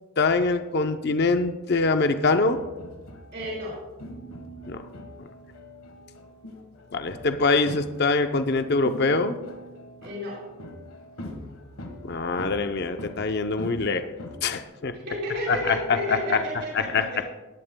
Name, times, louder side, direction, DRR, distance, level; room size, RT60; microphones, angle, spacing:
voice 1, 0.2-2.6 4.7-4.8 6.9-9.3 12.0-14.1 14.4-14.9 15.5-16.4 16.7-17.0, left 3 dB, 50° left, 8 dB, 0.6 m, -24 dB
sound 1, 2.5-14.6, left 1 dB, 85° left, 1.4 m, -42 dB
voice 2, 3.3-3.8 10.0-10.4 14.9-17.2, equal, 55° right, -7 dB, 4.3 m, -32 dB
18.5 x 11.0 x 2.2 m, 1.1 s
head